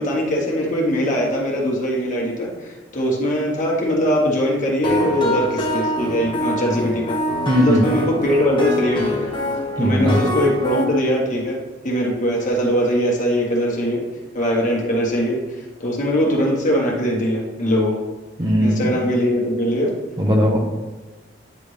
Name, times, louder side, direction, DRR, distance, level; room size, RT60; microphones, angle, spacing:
voice 1, 0.0-7.2 7.6-9.3 9.8-11.6 11.8-14.0 14.3-18.0 18.6-19.9, equal, 45° left, -2 dB, 1.5 m, -21 dB
sound 1, 4.8-10.8, left 1 dB, 25° left, 1.2 m, -24 dB
voice 2, 7.5-7.9 9.8-10.2 18.4-18.9 20.2-20.6, equal, 25° right, 1 dB, 0.8 m, -17 dB
9.7 x 3.5 x 3.3 m, 1.3 s
head